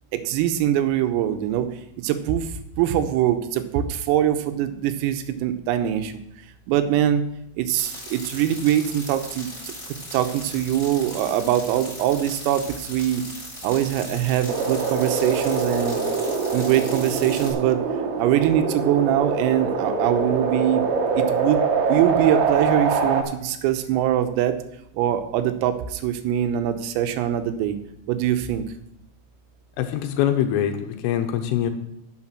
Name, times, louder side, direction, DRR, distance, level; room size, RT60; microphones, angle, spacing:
voice 1, 0.1-1.7 2.0-2.5 2.8-6.1 6.7-7.2 7.6-9.5 10.1-13.2 13.6-16.0 16.5-17.8 18.2-20.8 21.2-21.6 21.9-24.6 25.0-27.8 28.1-28.7, right 11 dB, 90° right, 9 dB, 3.6 m, -23 dB
sound 1, 7.8-17.5, left 1 dB, 10° left, 2.5 m, -38 dB
sound 2, 14.5-23.2, right 5 dB, 70° right, 3.0 m, -24 dB
voice 2, 29.8-31.7, left 10 dB, 80° left, 7 dB, 3.3 m, -23 dB
9.9 x 7.2 x 6.0 m, 0.78 s
omnidirectional pair, 5.9 m